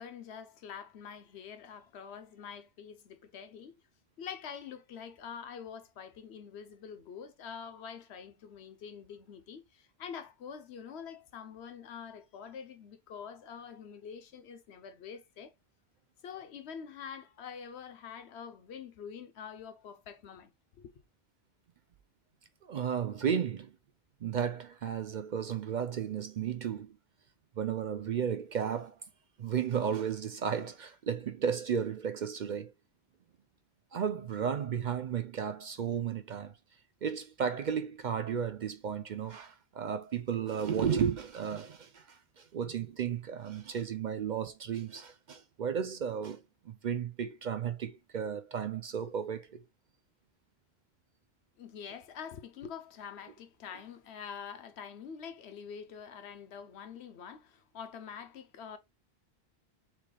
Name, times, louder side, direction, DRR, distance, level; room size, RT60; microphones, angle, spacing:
voice 1, 0.0-3.7 4.2-15.5 16.2-20.5 20.8-20.9 51.6-58.8, left 7 dB, 80° left, 1.0 m, -46 dB
voice 2, 22.6-23.7 24.2-27.0 27.6-29.0 29.4-32.7 33.9-36.5 37.0-49.6, right 7 dB, 55° right, 0.6 m, -34 dB
5.9 x 3.4 x 2.2 m
omnidirectional pair, 1.1 m